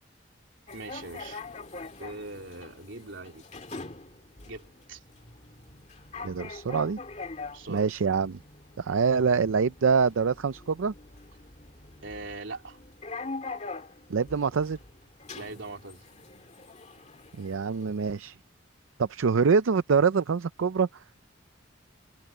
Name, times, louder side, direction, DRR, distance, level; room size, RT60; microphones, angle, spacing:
sound 1, 0.7-18.2, left 3 dB, 35° left, 2.2 m, -44 dB
voice 1, 0.7-1.4 2.0-3.5 4.5-5.0 7.5-7.9 12.0-12.8 15.3-16.1, right 2 dB, 70° right, 3.3 m, -41 dB
voice 2, 6.2-7.0 7.7-8.4 8.8-10.9 14.1-14.8 17.4-18.4 19.0-21.0, right 5 dB, 85° right, 0.5 m, -25 dB
head